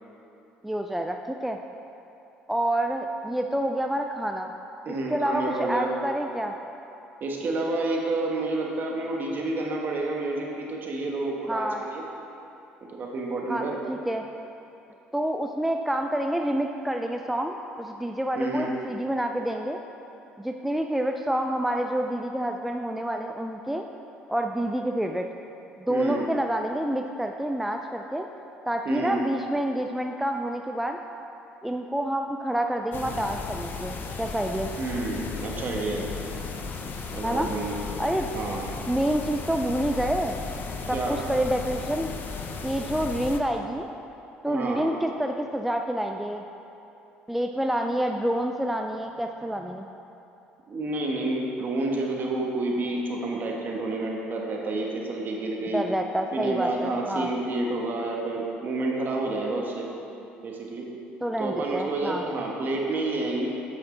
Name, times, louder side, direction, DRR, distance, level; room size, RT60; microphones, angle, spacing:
voice 1, 0.6-1.6 2.5-4.5 4.9-6.5 11.5-11.8 13.5-14.2 15.1-19.8 20.4-23.9 24.3-25.3 25.8-28.3 28.7-31.0 31.6-34.7 37.2-37.5 38.0-38.3 38.9-40.4 40.9-42.1 42.6-43.9 44.4-46.5 47.3-49.9 55.7-57.3 61.2-62.2, right 1 dB, 5° right, 4 dB, 0.3 m, -28 dB
voice 2, 4.8-5.9 7.2-12.0 12.8-13.7 18.4-18.7 25.9-26.3 28.8-29.3 34.8-36.0 37.1-37.8 38.3-38.7 40.9-41.2 44.5-44.9 50.7-55.8 56.3-59.9 60.4-60.9 61.4-63.5, right 2 dB, 45° right, -1 dB, 1.3 m, -29 dB
sound 1, 32.9-43.4, left 4 dB, 50° left, 0.7 m, -35 dB
7.3 x 5.9 x 3.8 m, 2.9 s
supercardioid pair, 75°, 4 cm